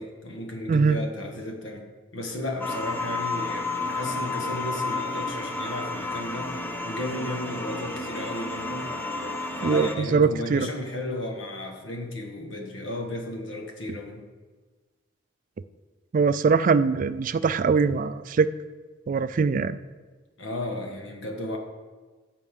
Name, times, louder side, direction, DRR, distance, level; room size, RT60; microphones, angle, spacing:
voice 1, 0.0-1.9 2.1-8.9 9.6-14.2 20.4-21.6, left 1 dB, 80° left, 2 dB, 1.5 m, -34 dB
voice 2, 0.7-1.0 9.6-10.7 16.1-18.5 19.1-19.8, right 5 dB, 45° right, 13 dB, 0.3 m, -22 dB
sound 1, 2.6-10.0, left 3 dB, 10° left, 0.7 m, -31 dB
13.5 x 5.4 x 3.7 m, 1.3 s
head